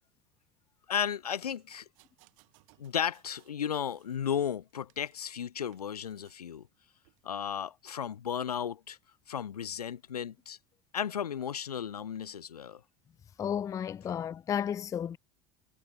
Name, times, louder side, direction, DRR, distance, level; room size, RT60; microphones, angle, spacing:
voice 1, 0.9-1.8 2.8-6.7 7.2-9.0 9.3-10.6 10.9-12.8, left 8 dB, 80° left, 0.6 m, -34 dB
sound 1, 1.4-3.6 3.9-5.4 5.7-6.4 7.0-7.2, right 28 dB, 60° right, 6.8 m, -66 dB
voice 2, 13.4-15.2, left 9 dB, 15° left, 0.3 m, -33 dB
figure-of-eight pair, 80°, 19 cm